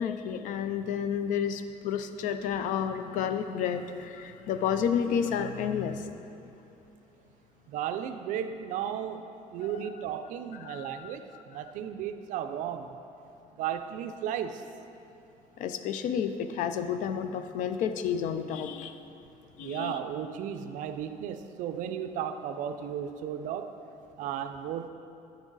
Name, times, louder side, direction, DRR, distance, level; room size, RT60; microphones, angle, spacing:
voice 1, 0.0-6.1 10.6-11.2 15.6-19.0 19.6-20.0, left 8 dB, 60° left, 9 dB, 0.4 m, -31 dB
voice 2, 7.7-12.9 13.6-14.6 19.6-23.7 24.2-24.9, right 9 dB, 65° right, 9 dB, 0.4 m, -35 dB
9.0 x 6.1 x 3.9 m, 2.9 s
cardioid pair, 165°, 15 cm